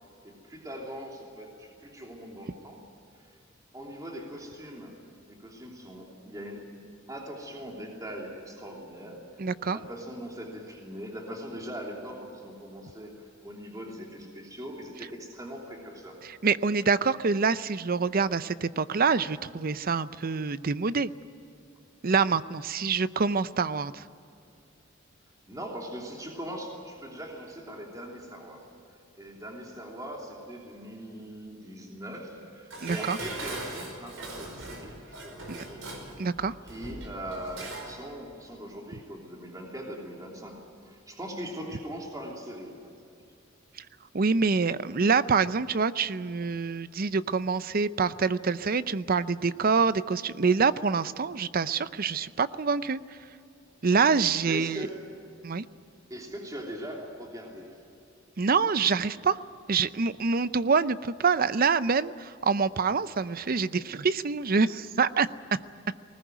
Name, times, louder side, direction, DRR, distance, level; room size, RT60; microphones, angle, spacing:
voice 1, 0.2-2.8 3.1-3.3 3.7-5.0 5.3-6.7 7.1-9.2 9.7-16.2 25.5-28.7 29.2-36.2 36.6-42.9 54.4-55.0 56.1-57.8 63.2-63.4, equal, 20° right, 0 dB, 3.1 m, -41 dB
voice 2, 9.4-9.8 16.4-21.1 22.0-24.0 32.8-33.2 35.5-35.6 36.2-36.5 44.1-53.0 53.8-54.9 55.4-55.6 58.4-59.4 59.7-65.3, right 5 dB, 50° right, 15 dB, 0.6 m, -26 dB
Dishes pots and pans, 32.7-38.0 38.3-38.4, right 2 dB, 80° right, 5.3 m, -40 dB
20.5 x 19.5 x 9.3 m, 2.6 s
head